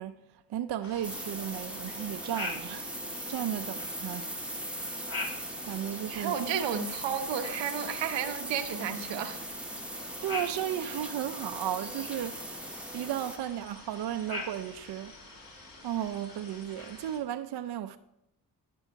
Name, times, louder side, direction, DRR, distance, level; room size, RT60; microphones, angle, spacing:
voice 1, 0.0-4.3 5.6-6.4 10.2-12.6 12.9-15.2 15.8-18.0, right 11 dB, 65° right, 0.5 m, -35 dB
sound 1, 0.8-17.2, left 2 dB, 50° left, 2.4 m, -45 dB
sound 2, 1.0-13.4, right 1 dB, 5° right, 0.9 m, -39 dB
voice 2, 6.1-9.4, right 8 dB, 80° right, 0.9 m, -32 dB
11.5 x 5.6 x 4.5 m
supercardioid pair, 50°, 43 cm